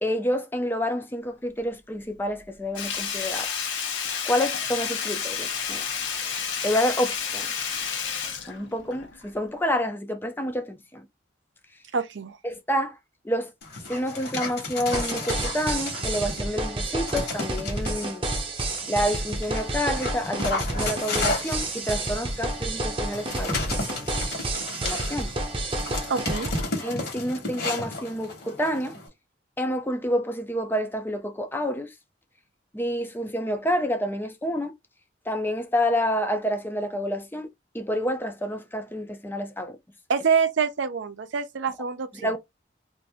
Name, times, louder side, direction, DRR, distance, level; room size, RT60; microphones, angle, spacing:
voice 1, 0.0-3.5 4.2-5.9 6.6-7.5 8.5-11.0 12.4-13.0 13.2-13.5 13.9-18.3 18.9-23.7 24.8-25.3 26.8-29.0 29.6-31.9 32.7-34.7 35.3-37.5 37.7-39.8 42.2-42.4, equal, 10° left, 0.4 m, -28 dB
Sink (filling or washing), 2.7-9.3 9.6-9.7, left 7 dB, 80° left, 0.9 m, -30 dB
voice 2, 11.9-12.4 26.1-26.5 40.1-42.3, right 6 dB, 75° right, 0.5 m, -26 dB
Dog, 13.6-16.5 17.1-18.1 18.7-29.1, left 2 dB, 55° left, 1.3 m, -33 dB
sound 1, 14.9-26.6, right 2 dB, 30° right, 0.7 m, -30 dB
2.6 x 2.5 x 3.4 m
head